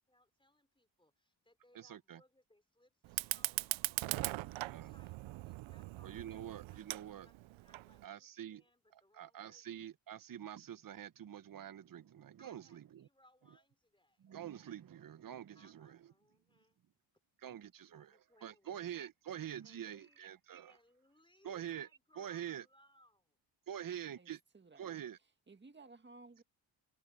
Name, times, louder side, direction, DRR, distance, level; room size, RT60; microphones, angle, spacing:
voice 1, 0.0-5.2 5.4-9.8 12.4-14.3 15.5-16.8 17.9-19.0 19.6-20.2 20.7-23.4, left 1 dB, 10° left, 4.8 m, -69 dB
voice 2, 1.7-2.2 4.7-4.9 6.0-7.3 8.0-8.6 8.9-13.1 14.2-16.0 17.4-20.7 21.4-21.9 22.2-22.6 23.7-24.4 24.8-25.2, right 10 dB, 45° right, 0.8 m, -46 dB
Fire, 3.0-8.0, right 18 dB, 80° right, 0.6 m, -40 dB
voice 3, 24.2-25.0 25.5-26.4, right 3 dB, 25° right, 1.8 m, -58 dB
cardioid pair, 75°, 46 cm